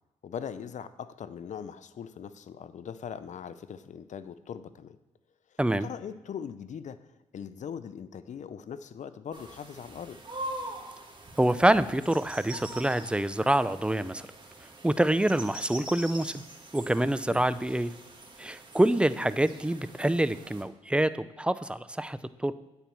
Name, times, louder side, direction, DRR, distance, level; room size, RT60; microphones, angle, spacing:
voice 1, 0.2-5.0 5.8-7.1 7.3-10.2 17.3-17.5, left 7 dB, 60° left, 13 dB, 0.6 m, -40 dB
sound 1, 9.3-20.6, right 1 dB, 35° right, 1.9 m, -44 dB
voice 2, 11.4-14.2 14.8-16.4 16.7-17.9 18.4-21.1 21.4-22.5, right 1 dB, 5° right, 14 dB, 0.5 m, -26 dB
9.2 x 4.4 x 6.9 m, 1.1 s
supercardioid pair, 55°, 14 cm